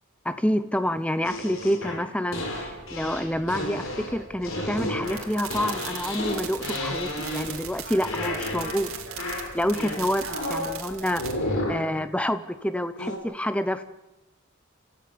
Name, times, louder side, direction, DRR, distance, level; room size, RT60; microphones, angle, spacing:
voice 1, 0.2-8.9 9.5-11.2 11.7-13.8, equal, 5° left, 11 dB, 0.8 m, -28 dB
sound 1, 1.2-7.7 8.0-8.9 9.2-10.8 11.2-11.9 13.0-13.2, left 1 dB, 75° left, 4.2 m, -32 dB
Boat Water vehicle, 2.5-11.5, right 2 dB, 60° right, 3.4 m, -45 dB
sound 2, 5.0-11.3, right 10 dB, 85° right, 2.4 m, -39 dB
29.5 x 14.5 x 6.9 m, 1.0 s
head